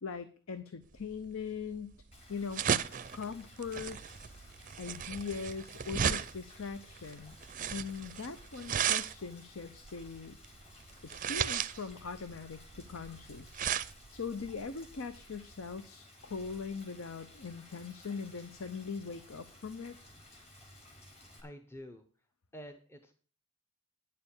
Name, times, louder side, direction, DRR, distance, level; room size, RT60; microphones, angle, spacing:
voice 1, 0.0-2.0 2.3-2.7 3.1-4.0 4.8-7.4 7.7-10.4 11.1-13.6 14.1-20.0, left 5 dB, 75° left, 11 dB, 0.7 m, -41 dB
sound 1, 1.0-15.8, right 8 dB, 40° right, 0.5 m, -36 dB
Rain, 2.1-21.4, left 1 dB, 30° left, 3.3 m, -56 dB
voice 2, 21.4-22.0 22.5-23.1, equal, 10° left, 6 dB, 0.7 m, -48 dB
9.5 x 6.8 x 7.0 m, 0.41 s
head